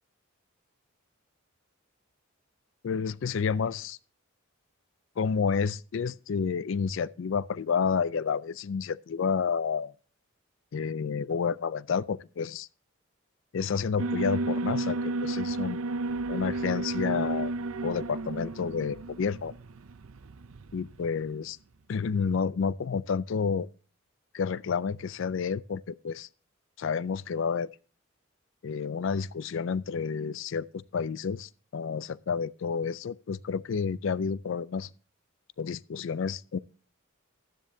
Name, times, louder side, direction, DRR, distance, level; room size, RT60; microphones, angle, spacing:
voice 1, 2.8-4.0 5.2-9.9 10.7-12.7 13.5-15.8 16.3-17.5 17.8-19.5 20.7-21.6 21.9-23.7 24.3-26.3 26.8-27.7 28.6-34.9 35.6-36.6, left 6 dB, 60° left, 0.4 m, -30 dB
Alarm, 14.0-21.1, right 2 dB, 75° right, 0.6 m, -32 dB
12.5 x 10.0 x 2.7 m
head